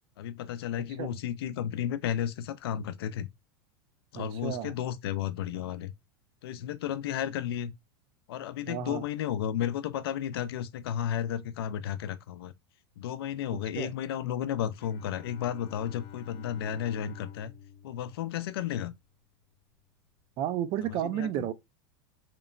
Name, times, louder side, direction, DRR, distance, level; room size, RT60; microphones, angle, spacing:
voice 1, 0.2-3.3 4.1-5.9 6.4-7.7 8.3-12.5 13.0-17.5 17.8-18.9 20.8-21.5, left 10 dB, 85° left, 0.4 m, -33 dB
voice 2, 4.2-4.7 8.7-9.0 13.8-13.9 20.4-21.5, right 11 dB, 40° right, 0.4 m, -32 dB
Bowed string instrument, 14.7-19.2, left 8 dB, 65° left, 0.8 m, -49 dB
2.9 x 2.0 x 2.4 m
supercardioid pair, 125°, 13 cm